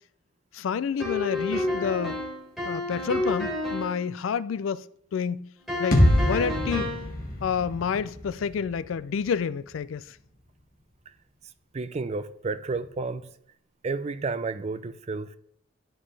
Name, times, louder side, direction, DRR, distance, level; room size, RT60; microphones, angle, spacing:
voice 1, 0.5-2.2 2.6-4.8 5.1-5.5 5.8-6.9 7.4-10.0, left 7 dB, 90° left, 0.4 m, -29 dB
sound 1, 1.0-4.0 5.7-7.1, left 1 dB, ahead, 3.8 m, -30 dB
sound 2, 5.9-9.8, left 1 dB, 45° left, 1.7 m, -26 dB
voice 2, 11.7-13.3 13.8-15.4, right 3 dB, 35° right, 0.4 m, -31 dB
12.5 x 5.4 x 3.3 m
head